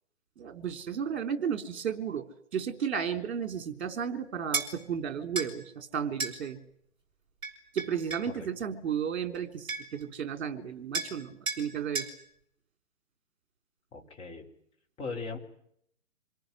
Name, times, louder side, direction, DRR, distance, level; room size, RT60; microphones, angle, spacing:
voice 1, 0.4-2.3 2.5-6.6 7.7-12.1, right 7 dB, 55° right, 10 dB, 3.9 m, -33 dB
sound 1, 4.5-4.7 5.4-5.5 6.2-6.4 7.4-8.3 9.3-9.4 9.7-10.0 10.9-11.2 11.5-11.6 12.0-12.1, right 4 dB, 10° right, 5.5 m, -33 dB
voice 2, 13.9-14.5 15.0-15.4, left 4 dB, 15° left, 0 dB, 3.8 m, -38 dB
27.5 x 19.5 x 9.9 m, 0.71 s
figure-of-eight pair, 140°, 41 cm